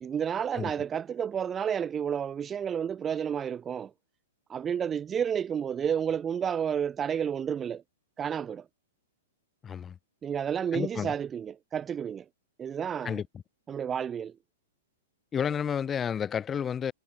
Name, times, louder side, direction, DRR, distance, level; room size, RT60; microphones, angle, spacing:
voice 1, 0.0-3.9 4.5-7.8 8.2-8.6 10.2-12.2 12.6-13.2 13.7-14.3, right 8 dB, 20° right, 1.1 m, -31 dB
voice 2, 9.6-10.0 10.7-11.1 13.0-13.3 15.3-16.9, left 8 dB, 20° left, 4.5 m, -31 dB
hypercardioid pair, 120°, 0 cm